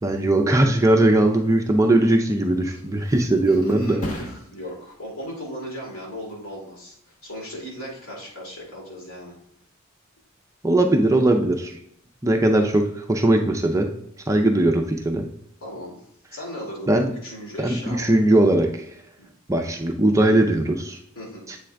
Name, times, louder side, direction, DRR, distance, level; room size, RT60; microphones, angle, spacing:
voice 1, 0.0-4.0 10.6-11.7 12.2-13.9 14.3-15.3 16.9-17.1 17.6-18.8 19.5-21.0 21.5-21.6, right 1 dB, 15° right, 3 dB, 0.4 m, -19 dB
Thump thud, 2.6-9.9 10.3-10.7, left 1 dB, 35° left, 1.0 m, -41 dB
voice 2, 3.5-4.2 4.5-9.3 15.6-16.0 16.3-17.0 17.2-18.2 19.2-19.3 21.1-21.5, equal, 65° left, -4 dB, 2.5 m, -37 dB
7.7 x 3.7 x 3.4 m, 0.72 s
head